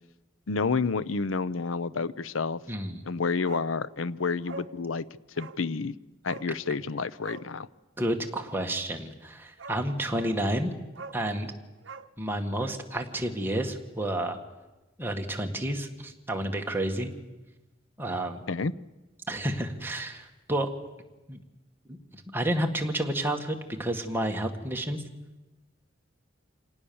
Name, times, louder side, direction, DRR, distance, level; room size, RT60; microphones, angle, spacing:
voice 1, 0.5-2.6 3.1-5.0 5.4-5.9 6.2-7.7 18.5-18.7, left 4 dB, 80° left, 19 dB, 0.7 m, -29 dB
voice 2, 2.7-3.0 8.0-10.7 11.1-11.5 12.2-14.4 15.0-17.1 18.0-18.4 19.3-20.7 21.3-21.4 21.9-25.0, right 1 dB, 10° right, 3 dB, 1.8 m, -30 dB
Bark, 3.4-3.7 4.0-4.1 4.4-4.7 5.3-5.6 6.2-6.5 7.2-7.5 9.1-9.2 9.6-9.8 10.1-10.4 10.9-11.2 11.8-12.8 13.1-13.2, right 4 dB, 65° right, 0.9 m, -43 dB
26.0 x 18.5 x 7.1 m, 1.1 s
head